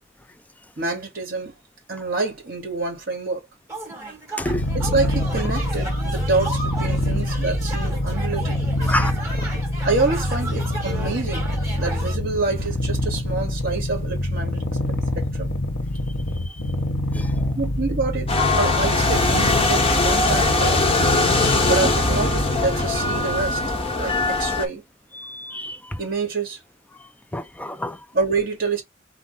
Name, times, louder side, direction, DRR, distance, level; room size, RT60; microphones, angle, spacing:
voice 1, 0.8-1.5 1.9-3.4 4.7-8.6 9.8-11.4 11.8-14.7 15.1-15.5 17.5-18.3 18.5-20.8 21.6-23.6 24.0-24.8 26.0-26.6 28.1-28.8, right 3 dB, 50° right, 2.8 m, -26 dB
sound 1, 3.7-12.2, right 2 dB, 15° right, 1.8 m, -34 dB
Purr, 4.4-23.7, left 1 dB, 70° left, 1.0 m, -26 dB
sound 2, 18.3-24.7, left 2 dB, 30° left, 1.4 m, -21 dB
voice 2, 25.2-25.8 27.3-28.0, left 1 dB, 10° left, 0.4 m, -28 dB
4.6 x 2.6 x 3.9 m
head